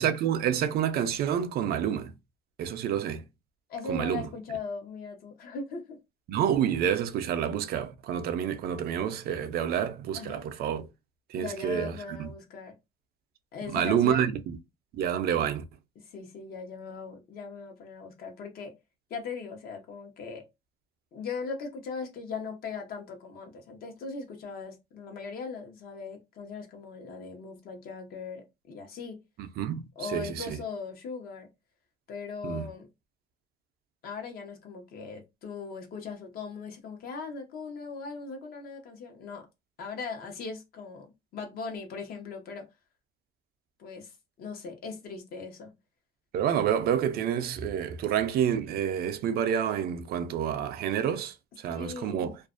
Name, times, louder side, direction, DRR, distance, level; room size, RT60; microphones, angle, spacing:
voice 1, 0.0-2.1 2.6-3.2 3.9-4.2 6.3-10.8 11.3-11.9 12.2-12.3 13.7-14.6 14.9-15.6 29.4-29.8 30.1-30.3 32.4-32.6 46.3-52.4, right 9 dB, 65° right, 0.4 m, -28 dB
voice 2, 3.7-6.0 10.1-10.5 11.4-12.7 13.5-14.3 16.0-18.7 19.1-20.4 21.1-29.2 30.0-31.5 32.1-32.9 34.0-39.5 39.8-41.1 41.3-42.6 43.8-45.7 51.7-52.3, left 5 dB, 65° left, 0.8 m, -39 dB
2.4 x 2.1 x 2.4 m
cardioid pair, 110°, 17 cm